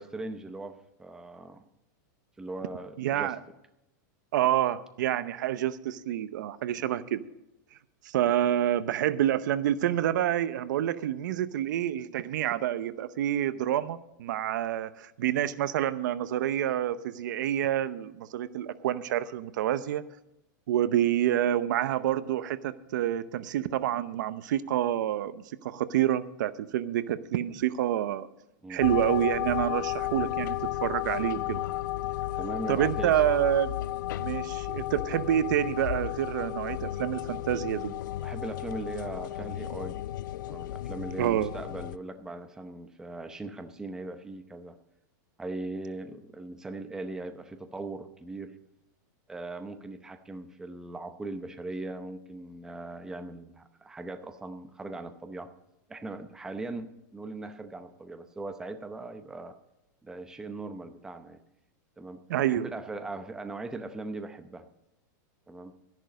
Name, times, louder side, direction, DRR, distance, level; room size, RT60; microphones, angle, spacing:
voice 1, 0.0-1.6 2.4-3.3 28.6-28.8 32.4-33.2 38.2-40.0 40.5-44.8 45.4-48.6 49.3-55.5 55.9-59.6 60.0-61.4 62.0-64.7 65.5-65.8, right 2 dB, 5° right, 8 dB, 0.7 m, -39 dB
voice 2, 3.0-3.4 4.3-7.3 8.0-20.0 20.7-28.3 28.7-31.6 32.7-33.7 34.2-37.9 41.2-41.5 62.3-62.6, right 11 dB, 70° right, 14 dB, 0.8 m, -28 dB
sound 1, 28.8-42.0, left 14 dB, 75° left, 0.5 m, -33 dB
13.0 x 11.0 x 5.1 m, 0.89 s
supercardioid pair, 165°, 10 cm